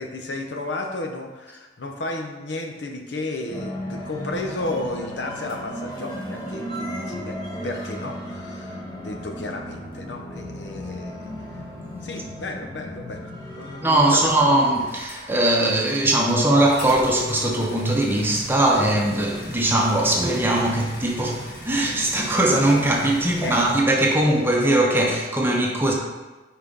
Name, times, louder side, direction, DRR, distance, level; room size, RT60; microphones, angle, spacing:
voice 1, 0.0-7.4 7.6-11.6 12.0-14.3 23.4-23.6, left 2 dB, 90° left, 3 dB, 0.8 m, -33 dB
sound 1, 3.5-14.8, equal, 25° left, 1.3 m, -35 dB
sound 2, 5.5-5.6 9.9-10.0 14.3-15.7 16.0-23.8, equal, 55° left, 1.7 m, -39 dB
voice 2, 13.8-25.9, right 1 dB, 15° right, -1 dB, 0.8 m, -20 dB
5.7 x 4.4 x 3.8 m, 1.2 s
head